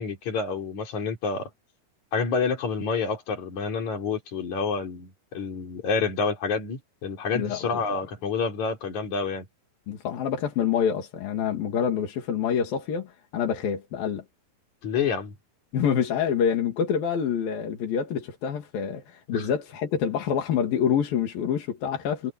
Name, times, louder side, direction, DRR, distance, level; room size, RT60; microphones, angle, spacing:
voice 1, 0.0-1.5 2.1-9.5 14.8-15.3 19.3-19.5, left 5 dB, 55° left, 5.2 m, -28 dB
voice 2, 9.9-14.2 15.7-22.3, left 8 dB, 85° left, 4.3 m, -26 dB
omnidirectional pair, 4.0 m